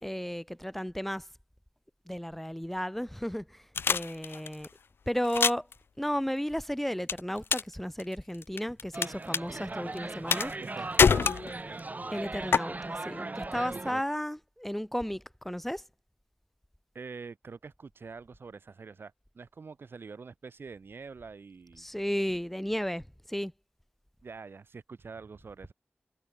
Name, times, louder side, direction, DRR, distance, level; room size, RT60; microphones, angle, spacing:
voice 1, 0.0-1.2 2.1-4.7 5.1-5.7 6.0-10.5 12.1-15.8 21.8-23.0 23.3-23.5, equal, 5° left, 3.7 m, -33 dB
sound 1, 3.8-4.7 5.2-5.7 7.1-7.7 8.0-9.1 9.3-9.4 10.3-10.7 11.0-11.8 12.5-12.6, left 6 dB, 90° left, 0.4 m, -24 dB
sound 2, 8.9-13.9, right 2 dB, 45° right, 3.0 m, -38 dB
voice 2, 10.6-11.8 13.5-14.0 16.9-21.9 24.2-25.7, right 4 dB, 80° right, 3.5 m, -46 dB
cardioid pair, 45°, 4 cm